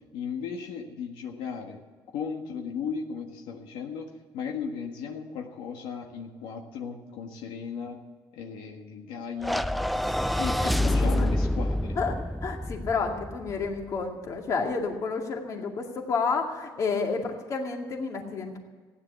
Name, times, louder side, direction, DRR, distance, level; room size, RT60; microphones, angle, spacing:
voice 1, 0.1-1.8 2.1-8.0 8.3-9.6 10.3-12.0, left 6 dB, 80° left, 2 dB, 1.6 m, -36 dB
sound 1, 9.4-13.8, left 1 dB, ahead, 0.3 m, -27 dB
voice 2, 10.6-11.3 12.0-18.6, left 4 dB, 40° left, 2 dB, 2.2 m, -30 dB
15.5 x 10.0 x 8.2 m, 1.5 s
cardioid pair, 140°, 8 cm